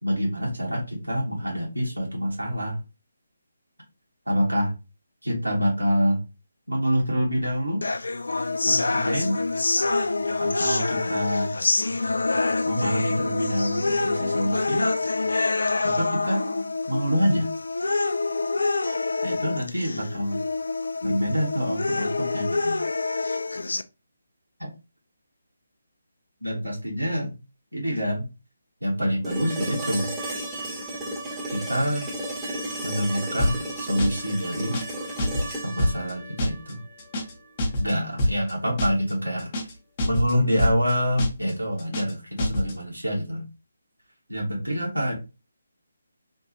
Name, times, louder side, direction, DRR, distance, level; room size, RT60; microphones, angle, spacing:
voice 1, 0.0-2.8 4.3-4.7 5.2-6.2 6.7-7.8 8.6-9.4 10.4-11.5 12.6-14.9 15.8-16.4 16.9-17.5 19.2-20.4 21.0-22.8 24.6-24.7 26.4-27.3 27.7-28.3 28.8-30.1 31.5-32.1 32.8-34.8 35.6-36.8 37.8-39.7 40.0-43.5 44.3-45.1, equal, 90° right, -3 dB, 1.3 m, -26 dB
sound 1, 7.8-23.8, left 3 dB, 65° left, 0.3 m, -26 dB
sound 2, 29.2-37.3 39.4-39.5, right 1 dB, 5° right, 0.9 m, -34 dB
sound 3, 33.4-33.7 34.0-34.3 34.6-34.9 35.2-35.5 35.8-36.1 36.4-36.7 37.0-37.3 37.6-37.9 38.2-38.5 38.8-39.1 39.4-39.7 40.0-40.3 40.6-40.9 41.2-41.5 41.8-42.1 42.4-42.7, left 1 dB, 30° left, 0.8 m, -25 dB
3.4 x 2.4 x 2.8 m, 0.28 s
figure-of-eight pair, 145°, 0 cm